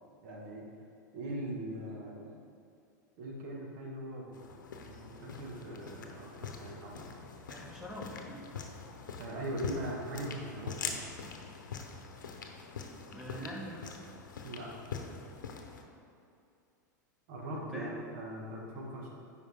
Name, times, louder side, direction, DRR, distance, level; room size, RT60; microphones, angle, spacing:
voice 1, 0.2-0.7 1.1-2.4 3.2-4.4 4.8-7.1 9.2-11.1 14.4-14.7 17.3-19.1, right 1 dB, 60° right, -1 dB, 1.6 m, -41 dB
sound 1, 4.3-15.8, left 5 dB, 85° left, 0.8 m, -44 dB
voice 2, 7.5-8.4 13.1-14.0 17.5-18.0, equal, 5° right, -4 dB, 1.2 m, -44 dB
9.1 x 4.8 x 3.6 m, 2.6 s
hypercardioid pair, 100°, 10 cm